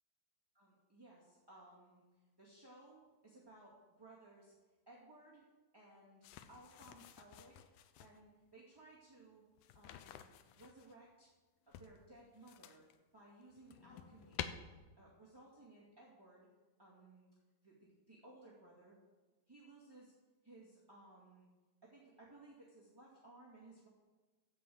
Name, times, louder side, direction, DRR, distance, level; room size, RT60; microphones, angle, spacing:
voice 1, 0.5-2.0 2.4-4.5 4.8-5.4 5.7-7.7 8.0-9.4 9.7-10.3 10.5-11.3 11.7-12.8 13.1-14.5 15.0-16.5 16.8-17.3 17.6-18.9 19.5-20.1 20.4-21.5 21.8-23.9, right 2 dB, 10° right, -6 dB, 1.3 m, -60 dB
sound 1, 6.2-8.2 9.6-10.9 11.7-13.0 13.4-14.5, left 12 dB, 80° left, 1.9 m, -50 dB
14.0 x 5.6 x 7.8 m, 1.3 s
omnidirectional pair, 4.1 m